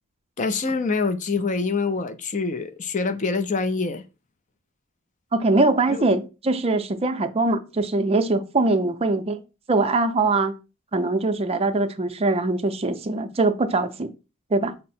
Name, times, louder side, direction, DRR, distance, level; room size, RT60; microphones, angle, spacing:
voice 1, 0.4-4.0 5.9-6.1, left 4 dB, 35° left, 0.4 m, -25 dB
voice 2, 5.3-9.4 9.7-10.5 10.9-14.1 14.5-14.7, right 2 dB, 30° right, 0.4 m, -22 dB
5.4 x 2.0 x 4.2 m
head